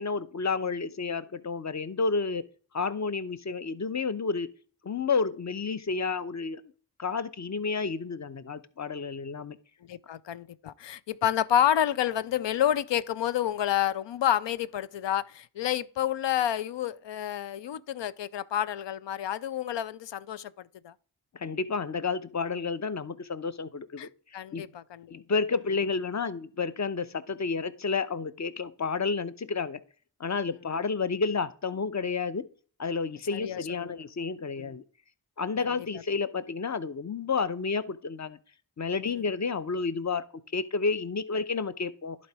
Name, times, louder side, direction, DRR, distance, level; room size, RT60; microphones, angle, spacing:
voice 1, 0.0-2.4 2.7-4.5 4.8-6.6 7.0-9.6 21.3-24.1 24.5-24.7 25.1-29.8 30.2-32.5 32.8-34.8 35.4-38.4 38.8-40.2 40.5-42.2, left 4 dB, 40° left, 0.8 m, -30 dB
voice 2, 9.9-20.5 20.8-20.9 24.0-24.1 24.3-25.1 33.3-34.0 34.6-34.7, left 10 dB, 90° left, 0.5 m, -29 dB
11.0 x 4.3 x 4.7 m
cardioid pair, 45°, 42 cm